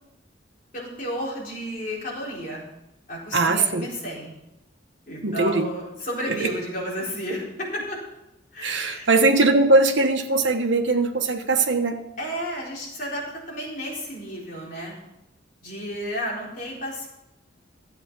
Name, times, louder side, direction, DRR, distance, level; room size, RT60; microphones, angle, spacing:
voice 1, 0.7-2.6 3.1-4.3 5.1-8.0 8.5-9.1 12.2-14.9 15.6-17.1, equal, 45° left, -4 dB, 4.1 m, -32 dB
voice 2, 3.3-3.9 5.2-5.7 6.3-6.5 8.6-12.0, right 3 dB, 80° right, 3 dB, 1.2 m, -20 dB
13.0 x 8.0 x 6.1 m, 0.89 s
head